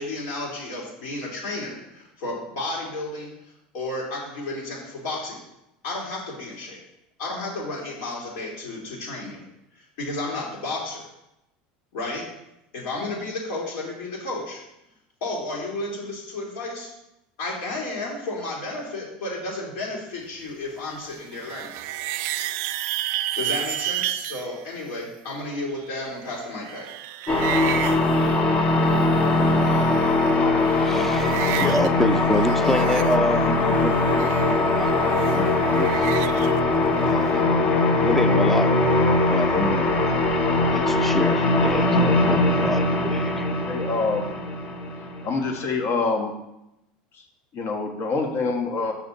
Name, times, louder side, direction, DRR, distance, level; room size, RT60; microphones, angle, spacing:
voice 1, 0.0-3.3 3.7-5.4 5.8-6.8 7.2-9.4 9.7-11.0 11.9-12.2 12.7-14.6 15.2-16.9 17.4-21.7 23.4-26.9, left 2 dB, 75° left, -3 dB, 3.0 m, -32 dB
sound 1, 21.0-24.5 25.8-29.2 29.5-30.3 30.6-31.9 32.2-36.6, right 14 dB, 65° right, 0.4 m, -32 dB
sound 2, 27.3-45.6, left 2 dB, 40° left, 1.2 m, -21 dB
voice 2, 30.7-34.9 35.3-35.9 37.0-37.4 38.0-38.7 39.2-40.2 40.7-43.5, left 1 dB, 5° left, 10 dB, 0.5 m, -28 dB
voice 3, 43.7-44.3 45.2-46.3 47.5-48.9, left 4 dB, 55° left, 3 dB, 1.4 m, -25 dB
6.3 x 5.9 x 4.1 m, 0.87 s
supercardioid pair, 105°, 4 cm